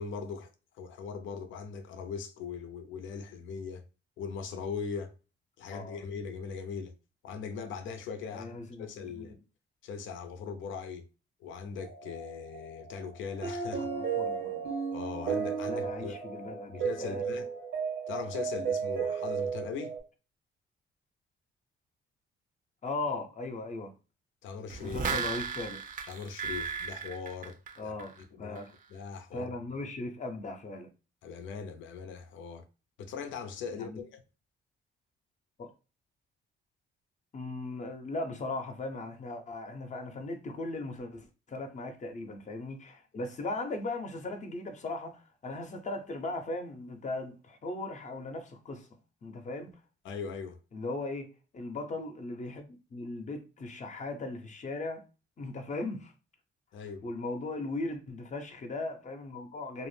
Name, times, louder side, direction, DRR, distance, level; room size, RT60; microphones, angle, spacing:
voice 1, 0.0-3.8 4.2-5.1 5.6-6.9 7.2-9.4 9.8-11.0 11.4-13.9 14.9-16.2 16.7-17.5 18.1-20.0 24.4-25.0 26.1-28.0 28.3-28.6 28.9-29.6 31.2-32.7 33.0-34.2 50.0-50.6 56.7-57.1, left 5 dB, 80° left, 0.5 m, -40 dB
voice 2, 5.7-6.0 8.3-9.4 13.8-14.7 15.7-17.2 22.8-23.9 24.8-25.8 27.8-28.7 29.3-30.9 33.7-34.0 35.6-35.7 37.3-48.9 49.2-49.8 50.7-55.1 55.4-56.1 57.0-59.9, left 2 dB, 40° left, 0.6 m, -38 dB
sound 1, 11.8-20.0, right 6 dB, 85° right, 1.2 m, -34 dB
sound 2, 24.7-28.2 28.6-28.7, right 5 dB, 40° right, 0.5 m, -35 dB
2.4 x 2.0 x 3.2 m
cardioid pair, 90°, 20 cm